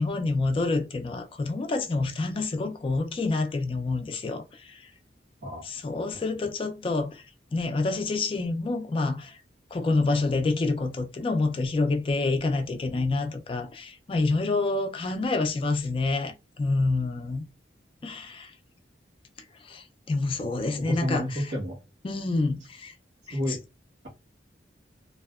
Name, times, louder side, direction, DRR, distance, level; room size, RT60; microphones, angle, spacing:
voice 1, 0.0-4.9 5.6-7.2 7.5-9.4 9.7-17.4 18.0-18.5 19.6-21.5 22.0-22.9 23.3-23.6, left 3 dB, 30° left, 0.3 m, -28 dB
voice 2, 20.9-21.8 23.3-23.6, equal, 90° right, 1.2 m, -29 dB
2.6 x 2.1 x 2.3 m
head